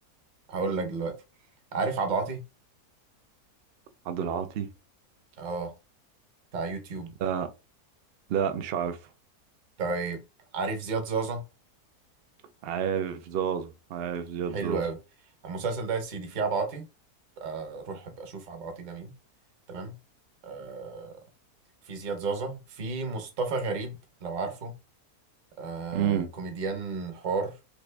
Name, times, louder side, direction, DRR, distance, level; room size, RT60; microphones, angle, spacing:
voice 1, 0.5-1.1 1.7-2.4 5.4-5.7 6.5-7.1 9.8-10.2 10.5-11.4 14.5-15.0 15.4-16.8 17.4-19.1 19.7-20.0 20.4-21.2 21.9-24.0 24.2-24.7 25.6-27.5, right 4 dB, 45° right, 0.6 m, -32 dB
voice 2, 4.0-4.7 7.2-7.5 8.3-9.0 12.6-14.8 25.9-26.3, right 8 dB, 90° right, 0.5 m, -29 dB
3.2 x 2.5 x 3.2 m
omnidirectional pair, 1.7 m